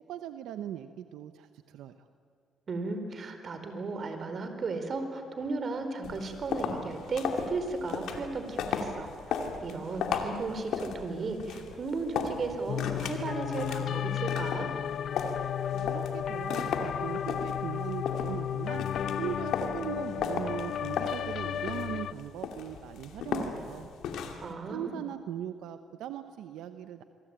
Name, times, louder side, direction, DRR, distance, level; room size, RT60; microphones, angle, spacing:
voice 1, 0.1-1.9 15.7-18.9 19.1-23.9 24.7-27.0, right 10 dB, 90° right, 9 dB, 0.9 m, -39 dB
voice 2, 2.7-9.1 9.6-14.7 24.4-25.0, right 3 dB, 45° right, 7 dB, 4.2 m, -35 dB
sound 1, 6.0-24.5, left 6 dB, 80° left, 2.7 m, -36 dB
sound 2, 12.7-22.1, left 9 dB, 65° left, 0.7 m, -33 dB
26.0 x 23.5 x 8.9 m, 2.3 s
cardioid pair, 90°, 0 cm